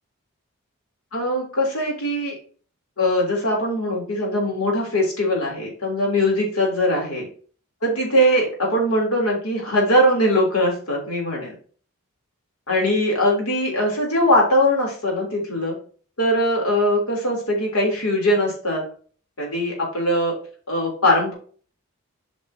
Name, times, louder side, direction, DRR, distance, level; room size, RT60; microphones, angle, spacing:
voice 1, 1.1-2.3 3.0-7.3 7.8-11.5 12.7-15.8 16.2-18.8 19.4-20.3 20.7-21.3, equal, 85° left, -1 dB, 3.6 m, -21 dB
8.3 x 5.4 x 2.8 m, 0.42 s
head